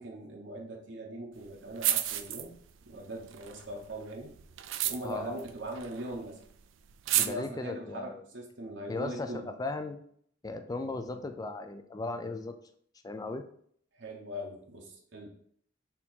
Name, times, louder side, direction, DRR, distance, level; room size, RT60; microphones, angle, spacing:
voice 1, 0.0-2.6 2.8-4.3 4.8-6.4 7.0-9.5 13.9-15.3, right 1 dB, 70° right, 0 dB, 0.8 m, -41 dB
sound 1, 1.4-1.5 1.8-2.8 3.2-6.3 6.5-6.6 6.9-7.3, right 12 dB, 90° right, 0.4 m, -31 dB
voice 2, 5.0-5.4 7.1-8.2 8.9-9.3 9.6-10.0 10.4-12.5 13.0-13.4, left 2 dB, 20° left, 7 dB, 0.4 m, -36 dB
4.3 x 2.8 x 3.7 m, 0.63 s
head